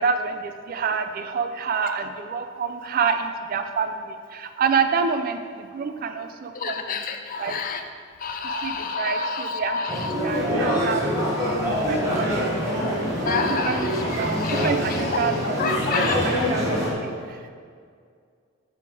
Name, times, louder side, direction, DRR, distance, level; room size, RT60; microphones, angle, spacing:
voice 1, 0.0-7.0 7.4-7.6 8.6-11.1 11.7-12.6 13.5-13.9 14.2-15.8 16.2-17.5, right 5 dB, 45° right, 8 dB, 0.3 m, -28 dB
voice 2, 6.5-7.8 8.2-10.1 13.2-16.2, left 4 dB, 40° left, 6 dB, 0.4 m, -29 dB
sound 1, 9.9-16.9, equal, 15° right, 1.2 m, -25 dB
6.2 x 3.5 x 4.4 m, 2.1 s
head